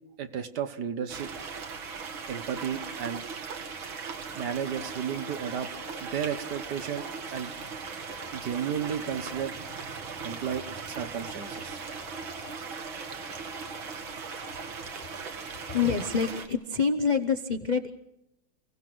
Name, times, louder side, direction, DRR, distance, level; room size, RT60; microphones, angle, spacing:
voice 1, 0.2-1.3 2.3-3.2 4.3-5.7 6.0-7.5 8.3-9.5 10.2-11.8, right 8 dB, 60° right, 9 dB, 1.6 m, -33 dB
sound 1, 1.1-16.5, right 5 dB, 85° right, 2.4 m, -39 dB
Boiling, 4.6-15.6, left 5 dB, 85° left, 2.3 m, -50 dB
voice 2, 15.6-17.9, left 5 dB, 55° left, 8 dB, 0.4 m, -26 dB
29.0 x 17.0 x 6.1 m, 0.88 s
omnidirectional pair, 2.1 m